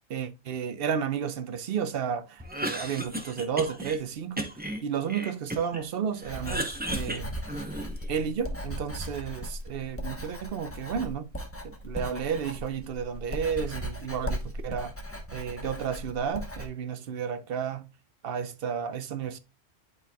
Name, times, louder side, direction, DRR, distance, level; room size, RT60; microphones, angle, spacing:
voice 1, 0.1-4.5 4.8-7.3 8.1-11.3 11.6-14.9 15.3-17.9 18.2-19.4, right 7 dB, 65° right, 0.8 m, -32 dB
Cough, 2.4-4.0 4.4-5.8 6.2-8.1, right 1 dB, 10° right, 0.7 m, -35 dB
Writing, 6.2-16.7, equal, 15° left, 1.0 m, -37 dB
11.0 x 4.3 x 2.2 m
omnidirectional pair, 1.1 m